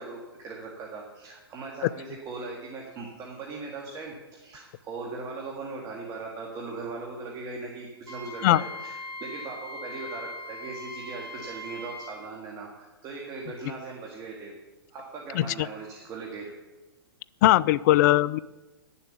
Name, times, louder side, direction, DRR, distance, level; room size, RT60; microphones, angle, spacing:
voice 1, 0.0-14.5 14.9-16.5, right 3 dB, 30° right, -1 dB, 2.1 m, -39 dB
Wind instrument woodwind instrument, 8.1-12.2, left 1 dB, 75° right, 2.8 m, -40 dB
voice 2, 17.4-18.4, left 15 dB, 45° left, 20 dB, 0.4 m, -19 dB
12.0 x 7.2 x 7.0 m, 1.1 s
hypercardioid pair, 125°, 13 cm